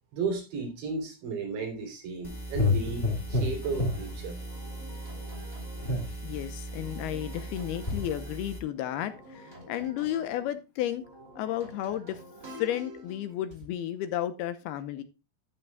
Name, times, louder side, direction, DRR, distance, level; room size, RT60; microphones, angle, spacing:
voice 1, 0.1-4.4, right 4 dB, 85° right, 5.9 m, -34 dB
sound 1, 2.2-8.6, left 2 dB, 55° left, 0.6 m, -32 dB
sound 2, 3.6-6.1 6.7-8.4 8.8-10.5 10.9-13.7, equal, 20° right, 2.7 m, -48 dB
voice 2, 6.2-11.0 11.4-12.2 12.5-15.0, left 12 dB, 75° left, 2.5 m, -33 dB
12.0 x 10.5 x 2.3 m
omnidirectional pair, 4.9 m